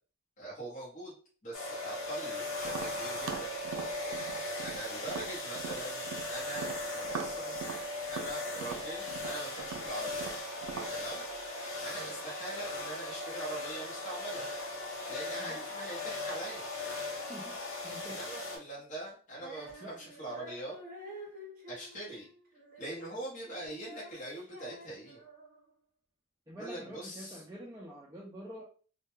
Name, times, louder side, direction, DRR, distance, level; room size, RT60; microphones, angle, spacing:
voice 1, 0.4-1.1 1.4-3.5 4.0-4.1 4.6-7.6 8.1-10.3 10.9-11.2 11.8-14.4 15.1-16.7 18.1-20.8 21.7-22.3 22.8-25.2 26.6-27.4, right 1 dB, 35° left, -6 dB, 0.8 m, -42 dB
sound 1, 1.5-18.6, left 1 dB, 75° left, 0.8 m, -38 dB
Tap, 2.6-6.3 6.6-10.9, right 6 dB, 85° right, 0.4 m, -42 dB
voice 2, 17.8-18.2 19.8-20.0 26.5-28.6, equal, 15° right, -5 dB, 0.3 m, -46 dB
Female singing, 19.3-25.7, equal, 40° right, 0.7 m, -50 dB
2.1 x 2.1 x 3.0 m, 0.40 s
head